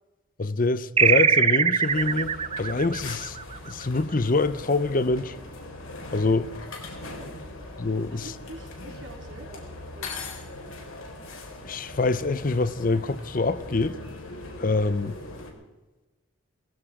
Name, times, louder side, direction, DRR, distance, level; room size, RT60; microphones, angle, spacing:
voice 1, 0.4-2.3 2.6-3.4 3.6-5.4 6.1-6.5 7.8-8.3 11.6-14.0 14.6-15.2, left 3 dB, 40° left, 0.6 m, -25 dB
sound 1, 1.0-4.0, right 6 dB, 25° right, 0.5 m, -22 dB
sound 2, 1.8-15.5, left 2 dB, 75° left, 3.8 m, -40 dB
voice 2, 6.8-7.4 8.1-10.7, right 1 dB, 65° right, 3.8 m, -46 dB
19.0 x 15.5 x 4.9 m
head